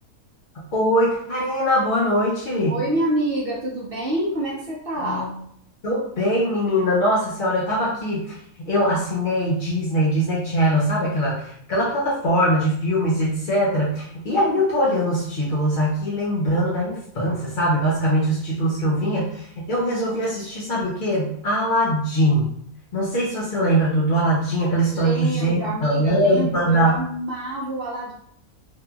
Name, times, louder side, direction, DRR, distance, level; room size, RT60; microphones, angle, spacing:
voice 1, 0.7-2.8 5.0-5.3 5.8-8.4 8.7-22.5 22.9-27.0, equal, 60° left, -7 dB, 0.5 m, -22 dB
voice 2, 2.7-5.3 24.9-28.1, right 1 dB, 60° right, -5 dB, 0.6 m, -27 dB
2.8 x 2.5 x 2.3 m, 0.66 s
omnidirectional pair, 1.6 m